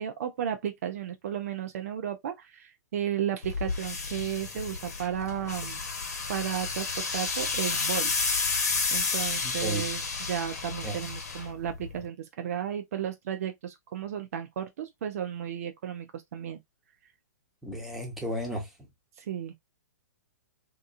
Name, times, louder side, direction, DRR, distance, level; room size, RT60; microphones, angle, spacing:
voice 1, 0.0-5.8 6.3-8.2 8.9-16.6 19.2-19.5, right 9 dB, 55° right, 0.5 m, -34 dB
sound 1, 3.4-12.1, left 4 dB, 60° left, 1.0 m, -31 dB
voice 2, 9.4-9.8 10.8-11.0 17.6-18.6, equal, ahead, 1.0 m, -33 dB
2.9 x 2.3 x 2.4 m
figure-of-eight pair, 115°, 9 cm